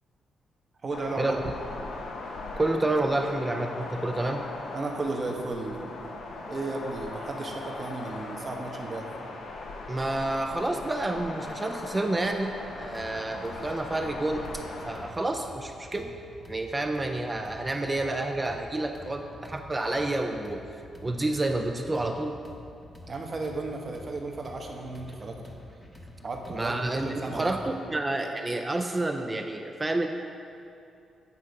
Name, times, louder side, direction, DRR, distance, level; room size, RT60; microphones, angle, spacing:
voice 1, 0.8-1.4 4.7-5.8 6.5-9.2 23.1-25.4 26.2-27.5, right 3 dB, 40° right, 2 dB, 0.9 m, -34 dB
sound 1, 0.9-15.1, left 2 dB, 75° left, 0.7 m, -39 dB
voice 2, 2.6-4.5 9.9-16.1 16.5-20.6 21.0-22.4 26.6-30.1, right 2 dB, 20° right, 4 dB, 0.4 m, -29 dB
sound 2, 12.7-27.7, left 1 dB, 25° left, 0.9 m, -48 dB
8.3 x 3.6 x 5.2 m, 2.6 s
cardioid pair, 80°, 0 cm